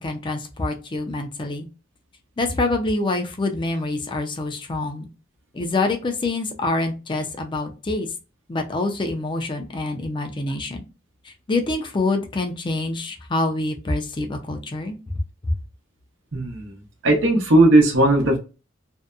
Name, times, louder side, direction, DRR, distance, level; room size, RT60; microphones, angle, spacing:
voice 1, 0.0-1.7 2.4-5.1 5.5-8.1 8.5-10.8 11.2-15.0 15.4-15.5, left 2 dB, 25° left, 0.5 m, -26 dB
voice 2, 16.3-16.7 17.0-18.4, right 1 dB, 85° right, 0.9 m, -16 dB
2.6 x 2.1 x 2.3 m
head